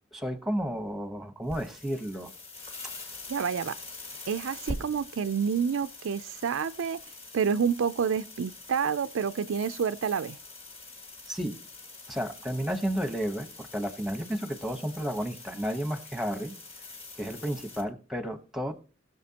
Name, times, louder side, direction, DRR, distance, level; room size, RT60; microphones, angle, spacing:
voice 1, 0.1-2.3 2.8-2.9 11.3-11.6 12.1-16.5 17.1-18.7, equal, ahead, 1.0 m, -32 dB
sound 1, 1.4-17.8, left 2 dB, 30° left, 1.7 m, -44 dB
voice 2, 3.3-3.7 4.3-7.0 7.3-10.4, right 6 dB, 70° right, 0.4 m, -28 dB
20.0 x 6.8 x 2.8 m
head